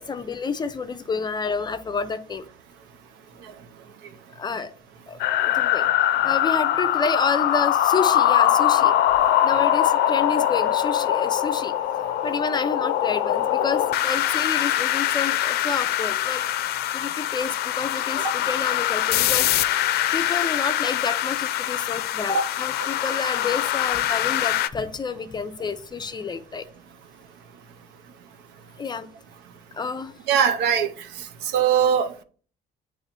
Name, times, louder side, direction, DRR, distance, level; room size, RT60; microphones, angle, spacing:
voice 1, 0.1-2.5 4.3-4.7 5.1-8.9 9.4-11.7 12.2-16.4 16.9-19.5 20.1-26.6 28.8-29.1 29.7-30.1, left 5 dB, 25° left, 0.5 m, -29 dB
sound 1, 5.2-24.7, left 12 dB, 70° left, 0.4 m, -23 dB
voice 2, 30.3-30.9 31.5-32.2, right 7 dB, 85° right, 0.6 m, -20 dB
8.7 x 3.0 x 4.2 m
cardioid pair, 110°, 17 cm